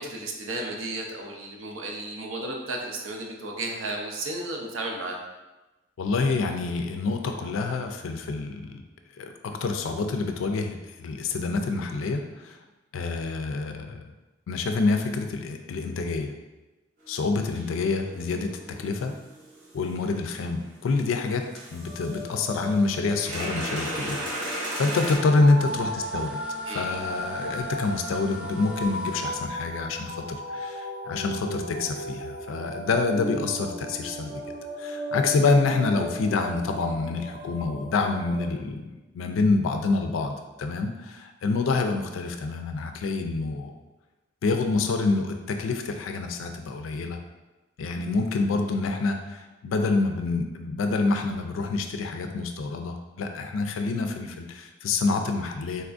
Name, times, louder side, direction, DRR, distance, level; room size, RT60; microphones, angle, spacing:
voice 1, 0.0-5.2 26.7-26.9, right 2 dB, 90° right, 0 dB, 0.5 m, -33 dB
voice 2, 6.0-8.8 9.2-12.6 12.9-14.0 14.5-16.3 17.1-19.2 19.7-21.5 21.7-26.4 26.7-34.3 34.8-43.7 44.4-47.2 47.8-55.8, left 3 dB, 85° left, 6 dB, 0.4 m, -27 dB
sound 1, 17.0-17.1 17.6-20.9 21.5-22.2 22.7-25.2, right 1 dB, 70° right, 1.0 m, -36 dB
sound 2, 21.7-38.5, equal, 50° right, 0.7 m, -36 dB
sound 3, 25.6-29.3, equal, 5° right, 0.3 m, -44 dB
4.1 x 2.3 x 2.5 m, 1.1 s
head